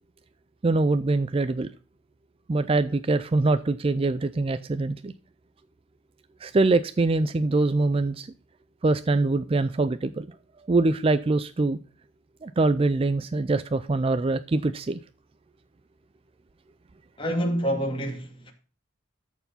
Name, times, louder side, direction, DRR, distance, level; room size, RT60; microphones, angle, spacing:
voice 1, 0.6-1.7 2.5-5.1 6.4-8.3 8.8-10.3 10.7-11.8 12.4-15.0, right 3 dB, 25° right, 0.3 m, -23 dB
voice 2, 17.2-18.5, equal, 25° left, 2.4 m, -27 dB
13.5 x 4.7 x 5.6 m
head